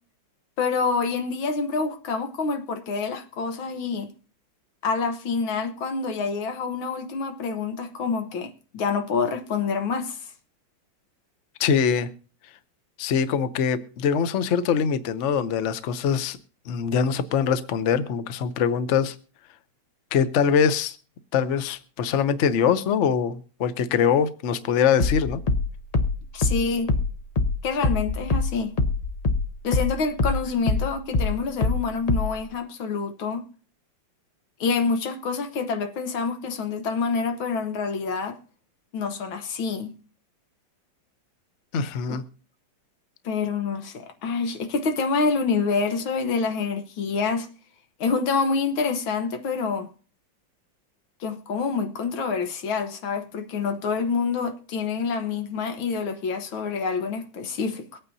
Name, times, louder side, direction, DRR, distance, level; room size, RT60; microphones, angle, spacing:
voice 1, 0.6-4.1 4.8-10.2 26.3-26.9 27.6-28.8 29.6-33.4 34.6-38.4 38.9-40.0 42.1-42.2 43.3-47.5 48.0-49.9 51.2-58.0, left 4 dB, 90° left, 1.9 m, -27 dB
voice 2, 11.6-12.1 13.0-16.4 16.7-19.1 20.1-21.0 21.3-25.4 41.7-42.2, left 7 dB, 55° left, 0.8 m, -23 dB
sound 1, 25.0-29.9 30.2-32.4, left 3 dB, 70° left, 0.3 m, -23 dB
23.5 x 8.9 x 2.7 m
omnidirectional pair, 2.1 m